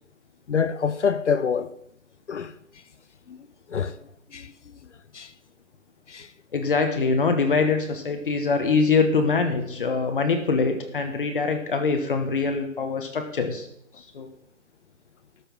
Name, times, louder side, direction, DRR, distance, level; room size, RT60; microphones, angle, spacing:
voice 1, 0.5-1.7 2.3-2.5 3.3-4.0 4.3-4.5 5.1-5.3 6.1-6.3, left 6 dB, 55° left, 0.7 m, -26 dB
voice 2, 6.5-13.7 14.1-14.3, left 4 dB, 40° left, 1.3 m, -23 dB
12.5 x 5.7 x 7.3 m
hypercardioid pair, 165°, 43 cm